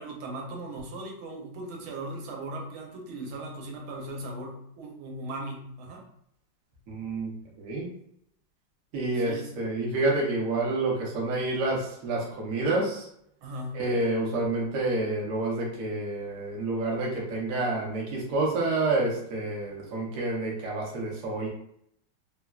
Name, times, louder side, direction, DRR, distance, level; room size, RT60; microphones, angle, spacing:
voice 1, 0.0-6.0 9.1-9.5 13.4-13.8, right 1 dB, 85° right, 0 dB, 1.5 m, -38 dB
voice 2, 6.9-7.3 7.6-7.9 8.9-13.1 13.7-21.5, right 2 dB, 60° right, -3 dB, 0.8 m, -28 dB
3.4 x 2.1 x 2.3 m, 0.71 s
omnidirectional pair, 2.3 m